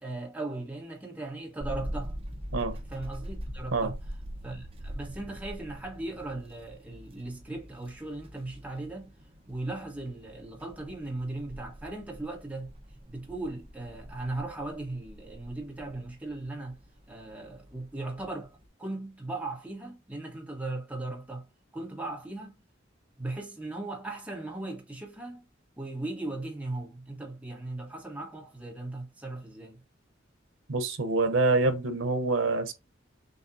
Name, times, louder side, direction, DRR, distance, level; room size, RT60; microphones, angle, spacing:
voice 1, 0.0-2.2 2.9-4.0 4.4-9.1 9.5-12.7 13.1-16.8 17.1-21.5 21.7-22.5 23.2-25.4 25.8-29.8, right 2 dB, 10° right, 1.5 m, -38 dB
sound 1, 1.6-18.7, equal, 30° right, 1.0 m, -43 dB
voice 2, 30.7-32.7, right 3 dB, 90° right, 0.9 m, -26 dB
6.5 x 2.7 x 2.7 m
head